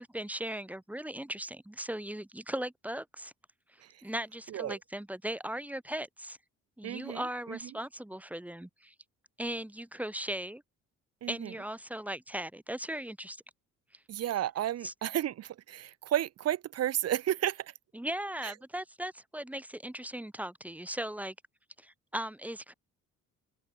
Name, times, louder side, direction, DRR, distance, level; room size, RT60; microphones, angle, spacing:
voice 1, 0.0-3.3 3.7-6.4 6.8-8.9 9.4-10.6 11.3-13.4 14.8-14.9 17.9-21.3 21.8-22.7, right 1 dB, 5° right, 1.1 m, -38 dB
voice 2, 4.5-4.8 6.8-7.7 11.2-11.5 14.1-17.7 18.4-18.5, right 12 dB, 55° right, 0.7 m, -33 dB
cardioid pair, 90°, 30 cm